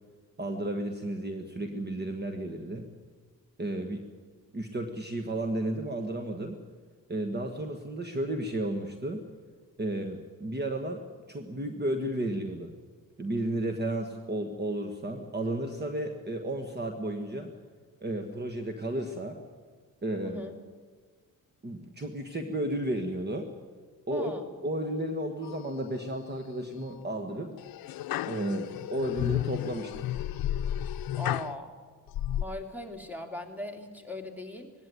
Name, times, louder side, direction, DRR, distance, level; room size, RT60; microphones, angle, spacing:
voice 1, 0.4-2.8 3.6-4.1 4.5-6.6 7.1-9.2 9.8-12.7 13.2-17.5 18.0-19.4 20.0-20.4 21.6-23.5 24.1-24.3 24.6-27.6 28.3-30.1, right 1 dB, 30° right, 5 dB, 1.6 m, -33 dB
voice 2, 20.2-20.6 24.1-24.4 31.1-31.8 32.4-34.7, left 1 dB, 5° right, 4 dB, 2.8 m, -39 dB
sound 1, 25.4-26.1 26.6-27.0 27.6-31.6 32.1-32.4, left 12 dB, 90° left, 0.6 m, -33 dB
19.5 x 16.5 x 9.5 m, 1.5 s
cardioid pair, 105°, 35 cm